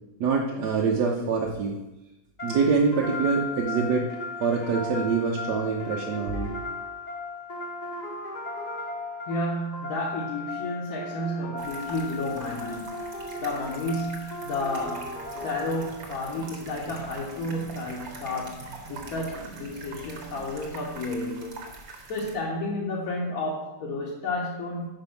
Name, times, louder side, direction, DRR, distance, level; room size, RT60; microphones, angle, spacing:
voice 1, 0.2-1.8 2.4-4.1 4.4-6.6, right 5 dB, 85° right, -1 dB, 1.4 m, -25 dB
sound 1, 2.4-16.2, left 2 dB, 30° left, 0.9 m, -36 dB
voice 2, 9.3-21.6 22.1-24.9, left 1 dB, 60° left, -4 dB, 1.4 m, -32 dB
sound 2, 11.6-22.3, right 3 dB, 65° right, 1.6 m, -44 dB
sound 3, 14.8-20.6, right 5 dB, 45° right, 1.0 m, -46 dB
5.4 x 5.2 x 5.7 m, 0.95 s
omnidirectional pair, 1.8 m